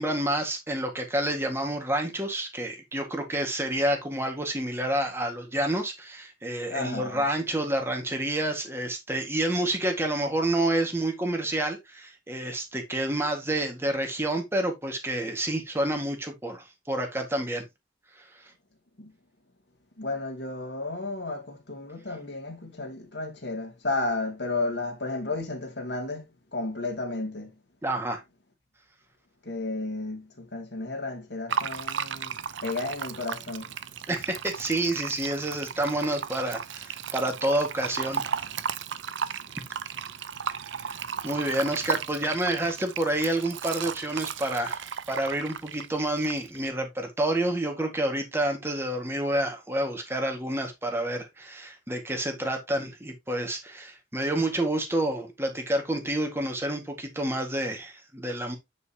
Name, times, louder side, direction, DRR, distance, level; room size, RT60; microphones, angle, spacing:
voice 1, 0.0-17.6 18.2-18.4 27.8-28.2 34.1-38.2 40.6-58.6, right 1 dB, 15° right, 1.9 m, -29 dB
voice 2, 6.7-7.2 19.0-19.1 20.0-26.2 26.5-27.5 29.4-33.7, left 2 dB, 65° left, 2.6 m, -33 dB
Fill (with liquid), 31.5-46.7, right 7 dB, 85° right, 0.7 m, -35 dB
9.3 x 5.4 x 2.9 m
head